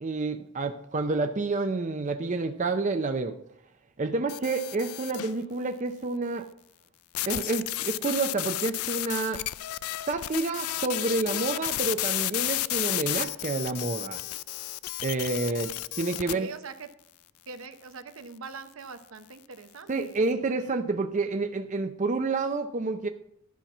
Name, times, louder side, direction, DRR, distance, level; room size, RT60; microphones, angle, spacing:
voice 1, 0.0-3.4 4.0-6.5 7.3-9.4 10.0-14.2 15.0-16.5 19.9-23.1, right 3 dB, 35° right, 7 dB, 0.5 m, -29 dB
sound 1, 4.3-5.4 7.1-16.3, left 16 dB, 90° left, 0.3 m, -32 dB
voice 2, 16.3-16.9 17.5-20.2, right 4 dB, 75° right, 9 dB, 0.8 m, -42 dB
11.5 x 5.8 x 6.0 m, 0.72 s
head